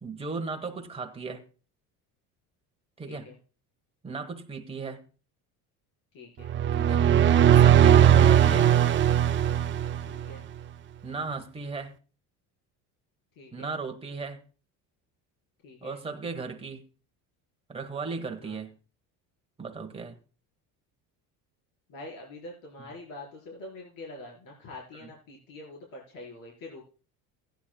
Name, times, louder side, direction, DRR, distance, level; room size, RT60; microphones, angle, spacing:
voice 1, 0.0-1.4 3.0-3.3 4.0-5.0 6.8-7.1 7.5-8.7 11.0-12.0 13.5-14.4 15.8-16.8 17.7-18.8 19.6-20.2 22.8-22.9 24.9-25.1, right 4 dB, 15° right, 1.2 m, -36 dB
voice 2, 6.1-6.5 10.1-10.4 13.4-13.7 15.6-16.0 18.4-18.6 21.9-26.8, left 2 dB, 65° left, 4.7 m, -45 dB
sound 1, 6.5-10.3, right 9 dB, 35° right, 0.4 m, -19 dB
15.5 x 10.0 x 2.2 m
cardioid pair, 125°, 37 cm